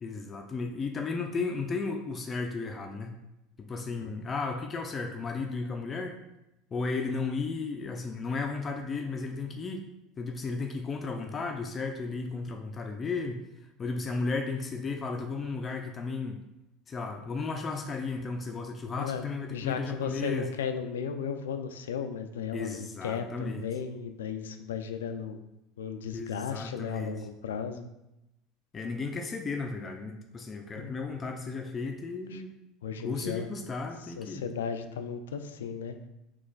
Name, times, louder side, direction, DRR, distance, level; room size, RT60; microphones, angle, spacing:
voice 1, 0.0-3.2 3.6-6.2 6.7-9.9 10.2-13.4 13.8-16.4 16.9-20.5 22.5-23.6 26.1-27.1 28.7-32.5 33.0-34.4, left 4 dB, 30° left, 4 dB, 0.5 m, -34 dB
voice 2, 19.0-25.4 25.8-27.9 30.8-30.9 32.3-32.4 32.8-33.5 34.2-36.0, left 7 dB, 90° left, 8 dB, 0.3 m, -35 dB
3.3 x 3.0 x 3.9 m, 0.89 s
hypercardioid pair, 90°, 0 cm